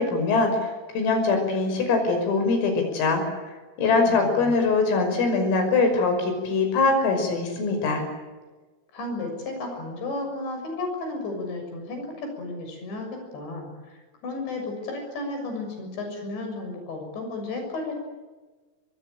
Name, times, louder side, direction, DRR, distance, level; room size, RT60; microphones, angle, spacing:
voice 1, 0.0-3.2 3.8-8.0, left 3 dB, 85° left, 5 dB, 8.4 m, -22 dB
voice 2, 4.0-4.6 8.9-18.0, left 2 dB, 60° left, 4 dB, 8.9 m, -33 dB
24.5 x 23.0 x 9.1 m, 1.3 s
omnidirectional pair, 5.8 m